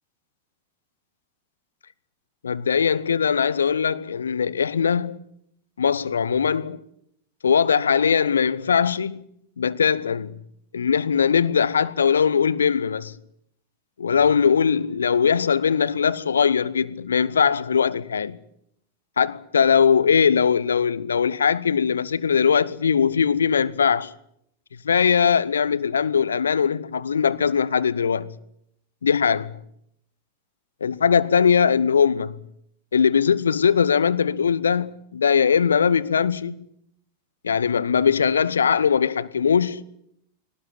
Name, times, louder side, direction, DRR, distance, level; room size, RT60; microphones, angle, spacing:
voice 1, 2.4-5.2 5.8-6.8 7.4-9.2 9.6-10.3 10.7-13.1 14.0-18.4 19.2-24.1 24.8-28.3 29.0-29.5 30.8-32.4 32.9-36.6 37.4-39.8, left 6 dB, 70° left, 1.0 m, -20 dB
21.0 x 18.5 x 9.3 m
figure-of-eight pair, 90°, 0 cm